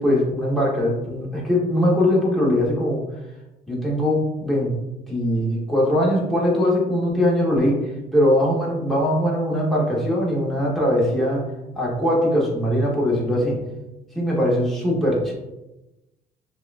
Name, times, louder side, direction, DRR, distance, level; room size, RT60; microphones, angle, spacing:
voice 1, 0.0-3.0 3.7-4.7 5.1-7.8 8.1-11.5 11.7-13.6 14.1-15.3, equal, ahead, -5 dB, 1.0 m, -21 dB
6.0 x 2.3 x 2.5 m, 0.97 s
cardioid pair, 155°, 17 cm